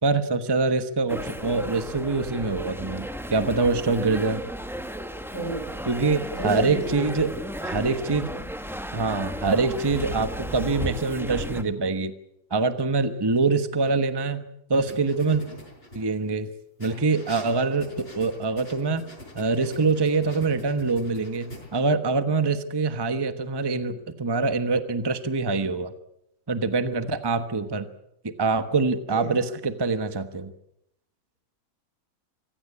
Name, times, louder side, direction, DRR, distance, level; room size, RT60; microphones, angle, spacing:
voice 1, 0.0-4.4 5.9-7.3 7.6-8.3 8.9-12.1 12.5-14.4 14.7-15.4 15.9-16.5 16.8-19.1 19.3-25.9 26.5-27.9 28.2-30.5, right 3 dB, 20° right, 10 dB, 1.1 m, -24 dB
sound 1, 1.1-11.6, equal, ahead, 1.3 m, -34 dB
voice 2, 5.3-5.8 6.3-7.2 29.1-29.3, right 2 dB, 80° right, 4 dB, 6.8 m, -32 dB
sound 2, 14.7-16.3 16.8-21.8, left 1 dB, 40° left, 6.1 m, -44 dB
25.5 x 16.5 x 8.5 m, 0.78 s
omnidirectional pair, 1.6 m